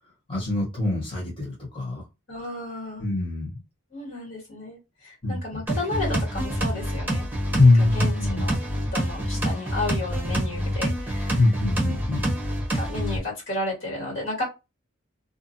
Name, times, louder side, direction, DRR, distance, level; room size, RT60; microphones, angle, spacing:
voice 1, 0.3-2.0 3.0-3.6 5.2-5.6 7.6-8.5 11.4-12.3, left 2 dB, 25° left, 1.2 m, -23 dB
voice 2, 2.3-3.0 3.9-7.3 7.8-8.6 8.9-11.4 12.7-14.4, left 2 dB, 55° left, 1.8 m, -33 dB
sound 1, 5.7-13.2, equal, 10° right, 1.0 m, -27 dB
2.6 x 2.4 x 2.6 m
head